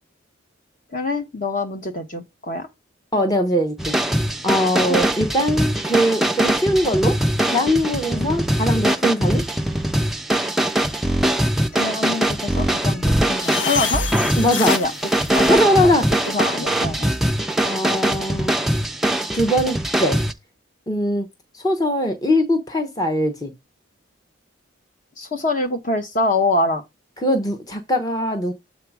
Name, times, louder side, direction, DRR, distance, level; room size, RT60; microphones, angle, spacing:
voice 1, 0.9-2.7 4.9-5.0 8.1-8.3 11.7-14.1 14.7-14.9 15.3-15.9 16.3-17.1 25.2-26.8, left 2 dB, 40° left, 1.0 m, -25 dB
voice 2, 3.1-4.0 4.4-7.2 7.4-9.4 14.4-14.7 15.5-16.3 17.6-18.5 19.3-20.2 20.9-21.3 21.5-23.5 27.2-28.5, equal, 20° left, 0.8 m, -21 dB
sound 1, 3.8-20.3, right 1 dB, ahead, 0.4 m, -22 dB
sound 2, 13.4-16.4, left 6 dB, 65° left, 0.6 m, -29 dB
7.5 x 4.0 x 4.7 m
head